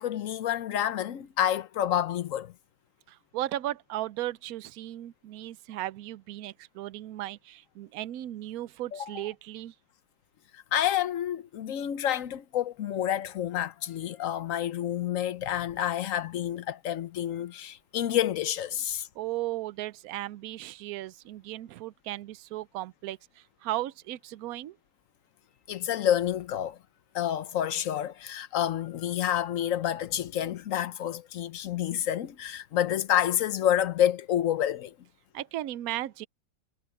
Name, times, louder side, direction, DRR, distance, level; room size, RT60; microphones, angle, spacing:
voice 1, 0.0-2.5 8.9-9.2 10.5-19.1 25.7-26.8 27.1-34.9, left 11 dB, 65° left, 1.1 m, -29 dB
voice 2, 3.1-9.7 19.2-24.8 35.3-36.3, right 14 dB, 75° right, 1.1 m, -36 dB
omnidirectional pair, 1.6 m